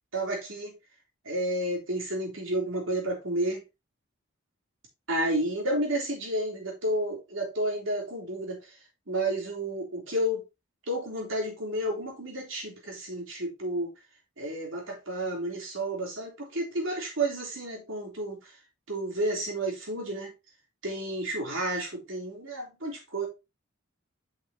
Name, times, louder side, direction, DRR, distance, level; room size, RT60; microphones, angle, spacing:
voice 1, 0.1-0.7 1.2-3.6 5.1-8.8 9.1-10.4 10.9-13.9 14.4-18.6 18.9-20.3 20.8-23.3, right 1 dB, 70° right, 3.3 m, -31 dB
8.1 x 5.8 x 2.8 m
head